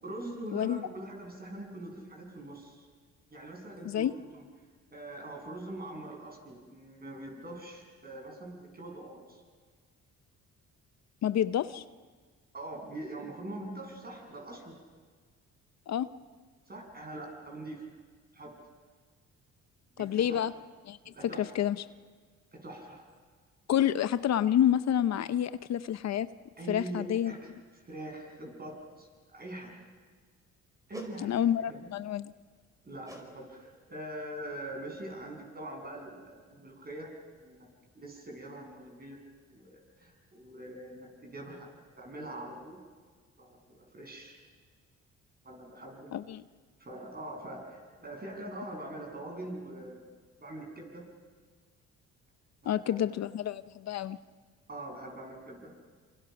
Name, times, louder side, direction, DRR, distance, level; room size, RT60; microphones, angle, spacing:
voice 1, 0.0-2.9 3.3-4.4 4.9-9.4 12.5-14.7 16.7-17.9 18.3-18.5 20.0-20.4 21.0-21.5 22.5-23.0 26.6-29.7 30.9-31.9 32.8-37.1 37.4-37.7 37.9-39.2 39.5-41.7 42.0-42.8 43.4-44.4 45.4-46.2 46.8-50.0 50.4-51.0 52.6-53.0 53.2-53.3 54.7-55.7, right 1 dB, 30° right, 1 dB, 7.7 m, -43 dB
voice 2, 11.2-11.8 15.9-16.1 20.0-20.5 20.8-21.8 23.7-26.3 26.7-27.3 31.2-32.3 46.1-46.4 52.6-54.2, left 10 dB, 60° left, 13 dB, 0.7 m, -29 dB
sound 1, 30.9-31.2 33.0-33.3 33.6-33.9 34.4-34.5, right 1 dB, 10° right, 5.1 m, -46 dB
27.0 x 27.0 x 6.0 m, 1.5 s
cardioid pair, 90°, 30 cm